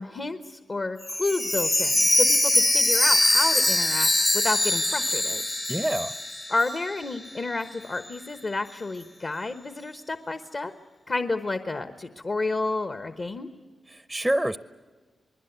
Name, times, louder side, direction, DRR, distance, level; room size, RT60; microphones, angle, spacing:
voice 1, 0.0-4.1 4.3-5.4 6.5-10.7 11.1-13.5, left 3 dB, 40° left, 9 dB, 1.2 m, -30 dB
Chime, 1.0-7.0 7.3-7.4 7.9-8.0, left 1 dB, 20° left, 0.9 m, -23 dB
voice 2, 5.7-6.1 13.9-14.6, right 1 dB, 5° right, 14 dB, 0.7 m, -26 dB
27.5 x 21.0 x 8.2 m, 1.4 s
wide cardioid pair, 95°, 0 cm